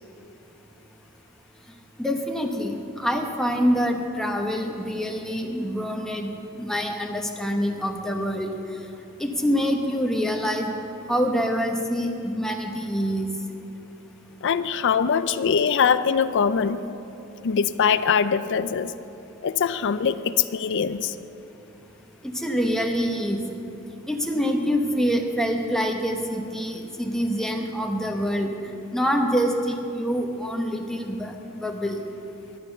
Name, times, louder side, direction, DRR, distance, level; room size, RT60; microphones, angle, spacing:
voice 1, 2.0-6.3 6.6-8.5 9.2-10.7 11.1-13.3 22.2-23.4 24.1-32.0, equal, ahead, 2 dB, 0.9 m, -26 dB
voice 2, 14.4-16.8 17.4-18.9 19.4-21.1, left 6 dB, 60° left, 13 dB, 0.4 m, -22 dB
11.5 x 9.3 x 7.1 m, 2.8 s
head